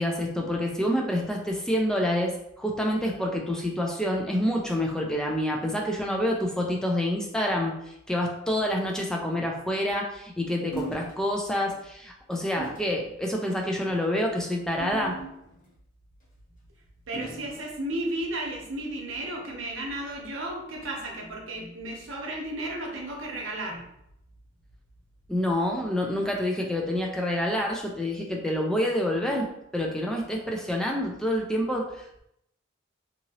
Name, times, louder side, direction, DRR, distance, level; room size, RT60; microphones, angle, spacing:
voice 1, 0.0-15.2 25.3-29.5 29.7-32.2, left 1 dB, 5° left, 0 dB, 0.3 m, -27 dB
sound 1, 10.7-11.2 11.6-11.8 12.6-12.9 13.7-14.0 14.8-15.7 17.1-17.6, right 2 dB, 40° left, 1.1 m, -38 dB
voice 2, 17.1-23.9, right 1 dB, 85° right, -1 dB, 0.8 m, -34 dB
2.8 x 2.7 x 2.8 m, 0.78 s
head